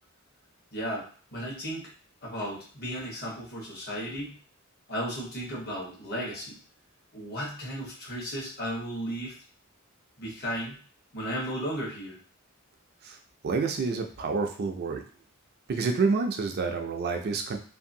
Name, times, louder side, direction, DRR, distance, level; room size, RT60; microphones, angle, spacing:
voice 1, 0.7-1.9 2.2-4.3 4.9-6.6 7.1-9.4 10.2-10.8 11.1-12.2 14.2-14.3, equal, 50° left, -3 dB, 1.1 m, -35 dB
voice 2, 13.4-15.0 15.7-17.6, right 4 dB, 50° right, 4 dB, 0.4 m, -28 dB
2.7 x 2.5 x 2.6 m, 0.42 s
head